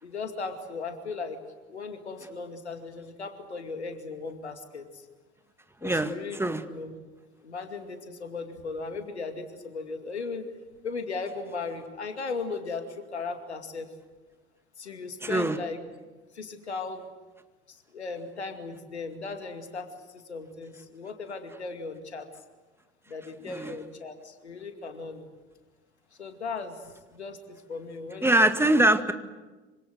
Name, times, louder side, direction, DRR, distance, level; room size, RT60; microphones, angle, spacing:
voice 1, 0.0-1.4 1.7-5.1 5.8-6.4 6.7-6.9 7.4-10.5 10.8-13.9 14.8-15.8 16.3-17.1 17.7-22.3 23.1-25.3 26.2-26.8 27.1-28.5, left 4 dB, 80° left, 7 dB, 2.5 m, -37 dB
voice 2, 5.8-6.6 15.2-15.6 23.5-23.7 28.2-29.1, right 1 dB, 5° right, 8 dB, 1.9 m, -23 dB
26.5 x 25.5 x 8.0 m, 1.2 s
figure-of-eight pair, 65°, 33 cm